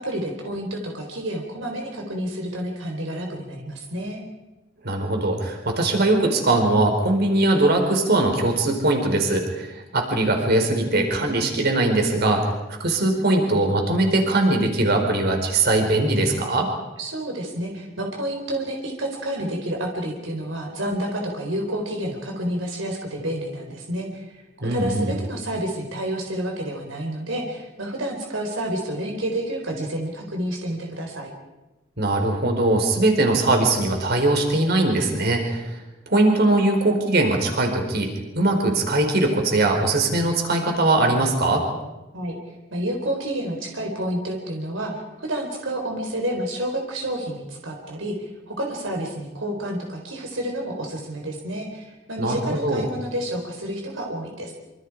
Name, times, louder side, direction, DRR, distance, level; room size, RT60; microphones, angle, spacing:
voice 1, 0.0-4.2 17.0-31.3 42.1-42.4 42.7-44.9 45.2-54.5, right 1 dB, 75° right, 1 dB, 4.1 m, -29 dB
voice 2, 4.8-12.5 12.8-16.7 24.6-25.1 32.0-35.7 36.1-41.6 52.2-52.8, right 2 dB, 55° right, 3 dB, 4.7 m, -21 dB
26.5 x 26.5 x 4.9 m, 1.0 s
head